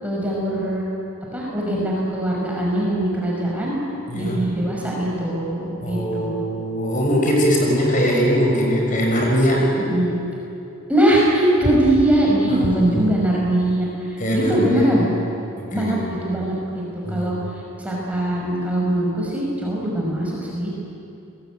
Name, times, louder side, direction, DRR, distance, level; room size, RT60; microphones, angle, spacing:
voice 1, 0.0-0.8 1.3-3.8 4.1-6.4 9.9-10.1 10.9-15.1 15.7-16.0 16.2-17.3 17.8-20.7, right 1 dB, 5° right, -4 dB, 5.5 m, -21 dB
voice 2, 4.1-4.4 5.8-9.7 12.5-13.1 14.2-15.1 15.7-16.1 17.1-17.4, equal, 35° left, -1 dB, 6.2 m, -21 dB
29.5 x 21.0 x 9.3 m, 2.8 s
head